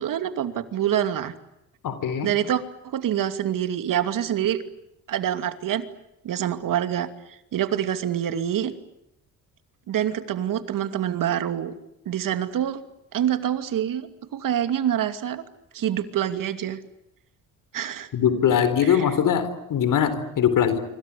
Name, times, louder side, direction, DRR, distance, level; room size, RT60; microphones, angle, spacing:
voice 1, 0.0-1.3 2.2-4.6 5.1-5.8 6.2-8.7 9.9-11.7 12.1-12.8 13.1-15.4 15.7-16.8 17.7-18.1 18.8-19.2, right 10 dB, 65° right, 10 dB, 2.7 m, -26 dB
voice 2, 1.8-2.3 18.1-20.8, left 8 dB, 65° left, 11 dB, 4.2 m, -21 dB
26.5 x 25.0 x 8.6 m, 0.84 s
cardioid pair, 85°, 35 cm